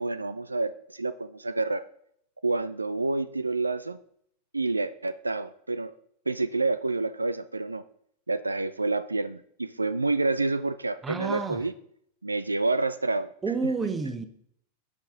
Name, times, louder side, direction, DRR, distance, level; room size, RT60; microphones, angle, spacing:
voice 1, 0.0-1.9 2.4-4.0 4.5-5.9 6.3-7.8 8.3-11.7 12.2-13.3, right 3 dB, 80° right, 0.4 m, -28 dB
voice 2, 11.0-11.6 13.4-14.3, right 4 dB, 15° right, 1.0 m, -29 dB
16.5 x 5.8 x 3.8 m
figure-of-eight pair, 90°, 0 cm